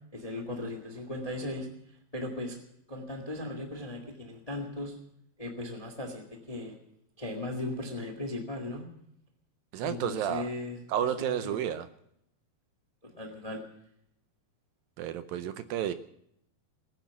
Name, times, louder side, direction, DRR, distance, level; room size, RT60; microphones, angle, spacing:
voice 1, 0.1-1.7 2.1-2.6 2.9-5.0 5.4-6.8 7.2-8.9 9.8-11.7 13.0-13.6, left 2 dB, 55° left, 4 dB, 0.4 m, -37 dB
voice 2, 9.7-10.4 10.9-11.9 15.0-15.9, right 10 dB, 80° right, 12 dB, 2.1 m, -31 dB
19.5 x 10.0 x 7.0 m, 0.76 s
omnidirectional pair, 4.7 m